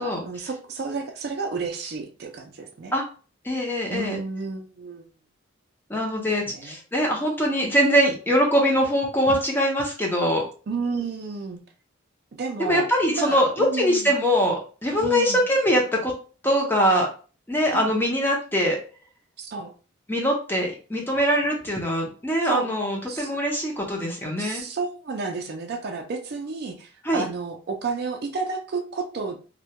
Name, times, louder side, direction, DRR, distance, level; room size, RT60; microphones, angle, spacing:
voice 1, 0.0-2.9 3.9-5.0 6.5-6.8 10.7-11.6 12.3-14.2 15.0-15.4 17.7-17.9 19.4-19.7 22.4-22.7 23.1-23.3 24.4-29.4, right 4 dB, 50° right, 4 dB, 0.4 m, -31 dB
voice 2, 3.4-4.2 5.9-10.4 12.6-16.1 16.4-17.1 17.5-18.8 20.1-24.6 27.0-27.2, equal, 10° left, 0 dB, 0.5 m, -22 dB
2.2 x 2.1 x 2.8 m, 0.37 s
head